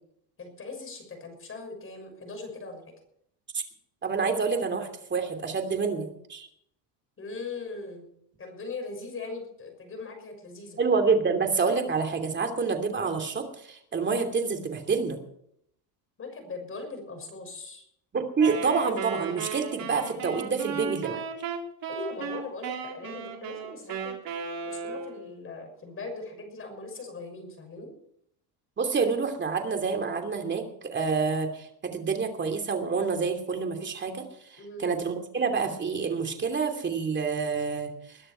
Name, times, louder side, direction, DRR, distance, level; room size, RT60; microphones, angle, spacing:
voice 1, 0.4-2.8 7.2-8.1 8.4-10.8 16.2-17.8 21.9-24.2 24.6-27.9 34.6-34.8, left 3 dB, 25° left, 4 dB, 6.3 m, -40 dB
voice 2, 4.0-6.5 10.8-15.2 18.1-21.2 28.8-34.2 34.8-38.2, right 5 dB, 20° right, 5 dB, 2.8 m, -28 dB
Wind instrument woodwind instrument, 18.4-25.3, right 6 dB, 45° right, 3.8 m, -35 dB
21.5 x 11.0 x 4.5 m, 0.71 s
cardioid pair, 130°, 50 cm